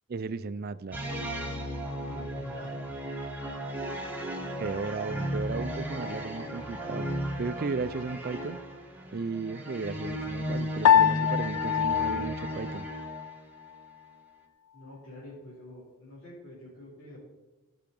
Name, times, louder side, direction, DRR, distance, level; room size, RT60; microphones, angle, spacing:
voice 1, 0.1-1.0 4.6-7.1 7.4-8.6 9.1-12.9, right 4 dB, 45° right, 14 dB, 0.4 m, -35 dB
sound 1, 0.9-13.4, equal, 10° right, 1.4 m, -35 dB
voice 2, 2.0-2.9 14.7-17.2, left 1 dB, 55° left, -10 dB, 4.0 m, -47 dB
Piano, 10.9-13.4, left 9 dB, 80° left, 0.4 m, -24 dB
17.0 x 5.8 x 5.3 m, 1.1 s
head